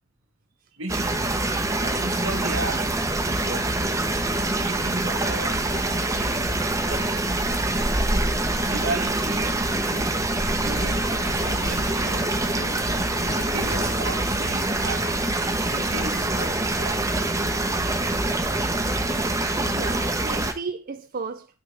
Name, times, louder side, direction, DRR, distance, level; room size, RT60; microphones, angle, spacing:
voice 1, 0.7-1.3 1.8-4.1 4.6-6.6 6.8-7.2 7.5-8.2 8.7-12.9 13.4-15.3 15.7-17.4, right 3 dB, 70° right, 1.4 m, -36 dB
sound 1, 0.9-20.5, right 2 dB, 15° right, 0.8 m, -25 dB
Bird, 10.3-18.5, left 3 dB, 65° left, 0.8 m, -40 dB
voice 2, 19.3-21.5, right 4 dB, 45° right, 0.4 m, -35 dB
10.5 x 6.2 x 3.4 m
head